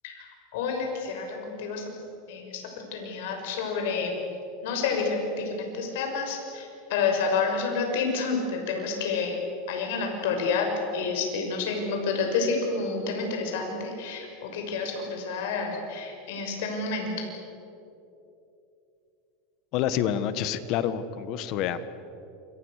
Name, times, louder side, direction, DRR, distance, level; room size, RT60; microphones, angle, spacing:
voice 1, 0.5-1.8 2.3-4.1 4.6-9.4 9.7-10.7 10.9-17.1, left 5 dB, 70° left, 2 dB, 6.3 m, -29 dB
voice 2, 19.7-21.8, left 10 dB, 50° left, 13 dB, 1.6 m, -28 dB
28.0 x 25.0 x 6.7 m, 2.8 s
supercardioid pair, 140°, 0 cm